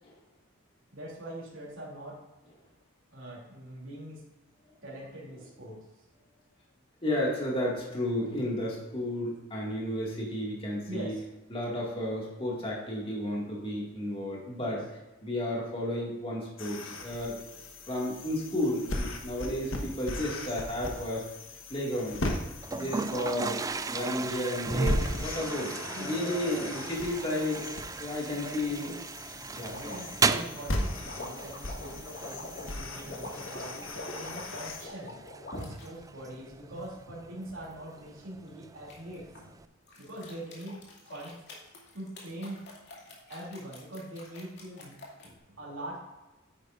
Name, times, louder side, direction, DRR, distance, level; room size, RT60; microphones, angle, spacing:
voice 1, 0.9-2.2 3.1-4.2 4.8-5.8 10.9-11.2 14.6-14.8 25.9-26.7 27.4-27.7 28.3-28.9 29.3-35.2 35.5-39.3 40.0-41.4 41.9-42.6 43.3-45.0 45.2-46.0, right 1 dB, 75° right, -5 dB, 3.0 m, -43 dB
voice 2, 7.0-11.1 11.5-14.8 15.2-17.4 17.9-21.2 21.7-22.2 22.7-23.6 23.9-27.6 28.0-28.9 29.6-30.4, left 1 dB, 30° left, -3 dB, 2.2 m, -32 dB
sound 1, 16.6-34.9, left 1 dB, 80° left, 1.4 m, -38 dB
Toilet flush, 22.6-39.6, right 4 dB, 15° right, 0.3 m, -37 dB
sound 2, 29.6-35.9 36.4-37.7 38.9-39.5 39.9-45.3, left 2 dB, 60° left, 2.5 m, -45 dB
9.9 x 9.2 x 2.6 m, 1.1 s
head